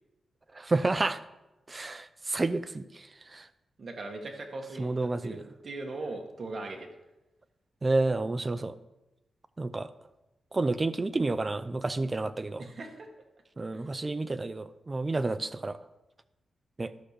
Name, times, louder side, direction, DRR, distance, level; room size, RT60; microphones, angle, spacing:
voice 1, 0.6-1.2 1.7-3.1 3.3-3.5 4.8-5.4 7.8-8.8 9.6-9.9 10.5-12.6 13.6-15.8 16.8-16.9, right 2 dB, 25° right, 12 dB, 0.5 m, -30 dB
voice 2, 3.8-6.9 12.6-13.1 13.7-13.9, right 2 dB, 40° right, 2 dB, 1.6 m, -39 dB
11.5 x 5.6 x 6.6 m, 0.99 s
wide cardioid pair, 145°, 0 cm